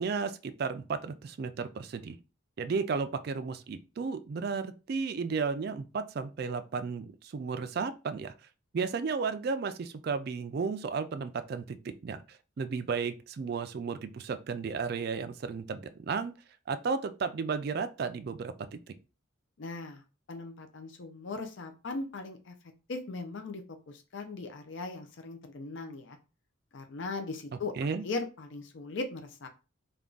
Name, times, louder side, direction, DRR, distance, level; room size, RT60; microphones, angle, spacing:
voice 1, 0.0-2.2 2.6-8.3 8.7-16.3 16.7-18.9 27.5-28.0, right 5 dB, 50° right, 0.3 m, -34 dB
voice 2, 19.6-20.0 20.3-22.5 22.9-26.2 26.7-27.7 28.0-29.5, left 3 dB, 60° left, 0.5 m, -39 dB
3.4 x 2.3 x 3.8 m
head